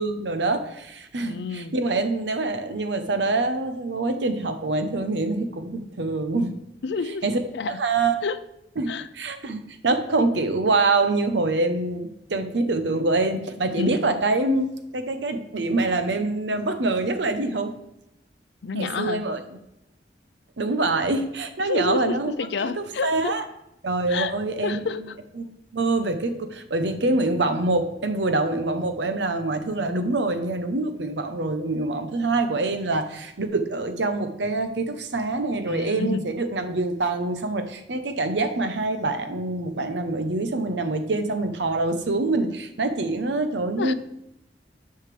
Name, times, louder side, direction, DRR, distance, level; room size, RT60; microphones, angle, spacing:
voice 1, 0.0-6.5 7.2-7.4 7.7-8.1 8.8-17.7 18.7-19.4 20.6-22.3 22.6-23.4 23.8-24.8 25.4-25.5 25.7-43.9, right 2 dB, 80° right, 9 dB, 0.8 m, -25 dB
voice 2, 1.2-1.8 6.8-7.2 7.5-7.8 8.2-8.4 8.9-9.1 13.7-14.1 18.6-19.2 21.6-23.3 24.1-24.3 24.6-25.2 35.6-36.3 43.8-43.9, left 5 dB, 75° left, 14 dB, 0.4 m, -29 dB
9.9 x 5.7 x 3.3 m, 0.86 s
head